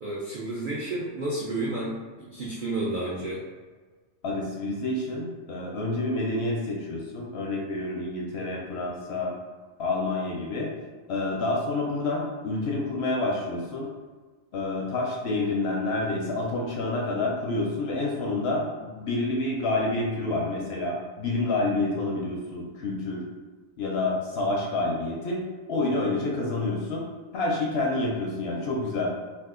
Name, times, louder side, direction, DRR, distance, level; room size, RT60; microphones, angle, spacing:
voice 1, 0.0-3.4, right 2 dB, 85° right, -5 dB, 0.4 m, -31 dB
voice 2, 4.2-9.4 9.8-10.7 11.1-13.9 14.5-18.7 19.0-23.2 23.8-25.4 25.7-27.1 27.3-29.1, left 2 dB, 65° left, -2 dB, 0.6 m, -28 dB
2.7 x 2.4 x 3.6 m, 1.4 s
omnidirectional pair, 1.6 m